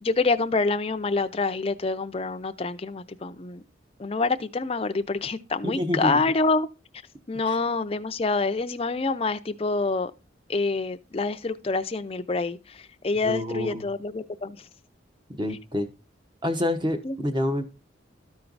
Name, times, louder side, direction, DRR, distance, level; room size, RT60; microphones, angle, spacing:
voice 1, 0.0-3.6 4.0-6.7 7.3-10.1 10.5-14.7 17.0-17.2, left 3 dB, 30° left, 0.5 m, -27 dB
voice 2, 5.6-6.1 7.5-7.6 13.2-13.9 15.3-15.9 16.4-17.6, left 1 dB, 25° right, 1.0 m, -27 dB
13.0 x 4.5 x 3.9 m
head